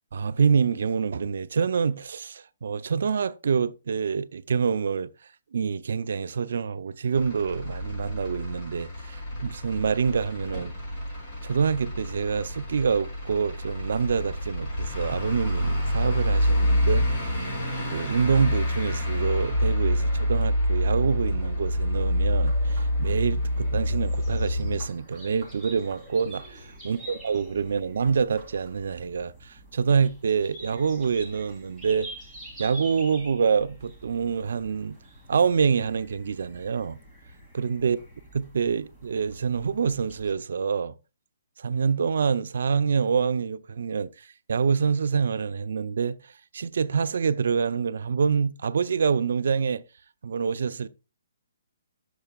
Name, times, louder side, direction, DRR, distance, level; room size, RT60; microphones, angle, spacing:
voice 1, 0.1-5.1 5.5-10.7 11.4-17.3 17.9-32.1 32.6-35.0 35.3-37.0 37.5-38.0 38.3-40.9 41.6-46.2 46.5-49.8 50.2-50.9, right 6 dB, 60° right, 0.4 m, -26 dB
Truck / Idling, 7.1-24.8, left 1 dB, 25° left, 5.3 m, -27 dB
sound 1, 22.4-40.3, right 1 dB, 5° left, 2.1 m, -47 dB
11.0 x 6.7 x 2.3 m
hypercardioid pair, 165°, 0 cm